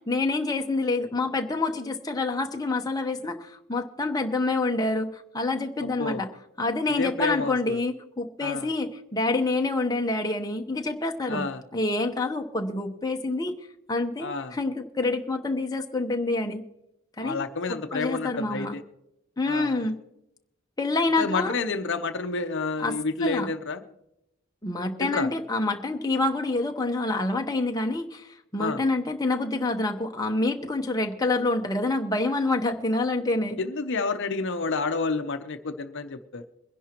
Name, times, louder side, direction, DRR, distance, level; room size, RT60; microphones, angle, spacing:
voice 1, 0.1-6.3 6.6-13.6 13.9-16.6 17.2-17.4 17.9-18.7 19.4-20.0 20.8-21.5 22.8-22.9 23.2-23.5 24.6-33.6, left 2 dB, 15° left, 3 dB, 0.8 m, -27 dB
voice 2, 7.0-7.8 8.4-8.7 11.3-11.6 14.2-14.5 17.2-18.8 19.5-19.8 21.2-23.8 25.0-25.3 28.6-28.8 33.6-36.4, left 3 dB, 55° left, 9 dB, 0.7 m, -29 dB
23.0 x 11.0 x 2.9 m, 0.85 s
head